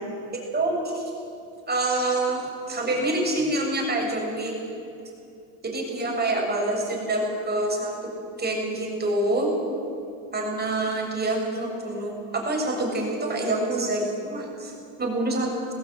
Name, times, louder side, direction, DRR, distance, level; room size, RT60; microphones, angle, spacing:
voice 1, 0.5-1.1 1.7-4.5 5.6-8.1 8.4-9.5 10.3-14.7 15.0-15.5, right 2 dB, 25° right, 0 dB, 7.1 m, -26 dB
19.5 x 16.0 x 9.7 m, 2.6 s
supercardioid pair, 100°, 39 cm